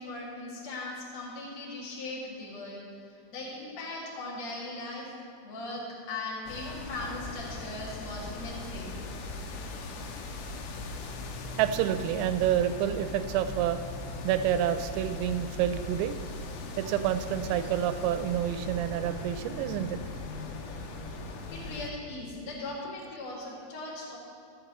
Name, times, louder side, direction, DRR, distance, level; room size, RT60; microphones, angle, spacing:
voice 1, 0.0-2.8 3.1-5.1 5.4-9.0 21.5-24.2, left 2 dB, 45° left, -5 dB, 2.4 m, -39 dB
sound 1, 6.5-21.9, left 2 dB, 90° left, 3.6 m, -39 dB
voice 2, 11.6-13.8 14.2-16.2 16.8-20.0, right 10 dB, 85° right, 10 dB, 3.2 m, -28 dB
15.5 x 9.9 x 3.0 m, 2.5 s
omnidirectional pair, 6.0 m